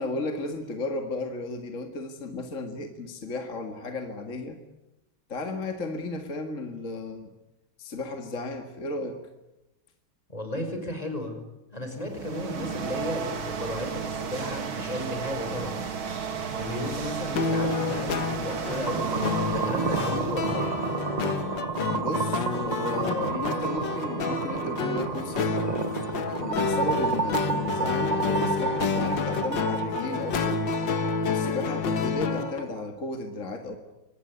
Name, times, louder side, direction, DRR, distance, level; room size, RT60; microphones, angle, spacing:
voice 1, 0.0-4.6 5.3-7.3 7.8-9.2 21.9-25.6 26.3-30.6 31.2-33.8, left 2 dB, 35° left, 5 dB, 2.2 m, -34 dB
voice 2, 10.3-11.4 11.7-15.8 16.5-20.8, left 1 dB, 15° left, 5 dB, 5.4 m, -34 dB
sound 1, 11.9-21.1, right 6 dB, 70° right, 2.9 m, -34 dB
sound 2, 17.4-32.6, left 5 dB, 60° left, 2.1 m, -29 dB
sound 3, 18.9-32.9, right 5 dB, 85° right, 0.3 m, -31 dB
25.5 x 19.5 x 9.6 m, 0.98 s
omnidirectional pair, 2.3 m